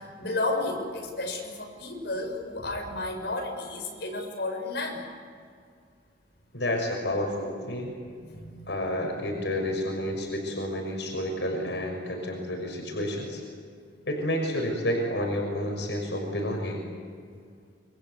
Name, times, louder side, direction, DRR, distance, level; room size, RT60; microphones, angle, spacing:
voice 1, 0.0-5.1 8.2-8.7, left 2 dB, 70° left, 1 dB, 6.8 m, -32 dB
voice 2, 6.5-7.9 8.7-13.4 14.1-16.8, left 1 dB, 90° left, 2 dB, 6.1 m, -30 dB
28.5 x 25.0 x 8.2 m, 2.2 s
head